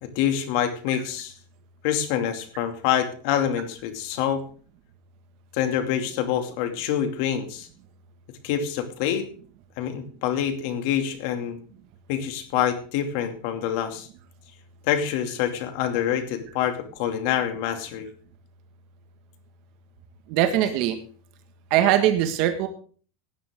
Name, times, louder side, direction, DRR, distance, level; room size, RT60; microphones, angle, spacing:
voice 1, 0.0-1.3 1.8-4.4 5.5-7.7 8.4-9.3 9.8-11.6 12.1-14.1 14.9-18.1, left 9 dB, 60° left, 7 dB, 2.5 m, -26 dB
voice 2, 20.3-21.0 21.7-22.7, right 11 dB, 55° right, 7 dB, 1.7 m, -21 dB
17.0 x 10.5 x 3.7 m, 0.42 s
supercardioid pair, 140°, 0 cm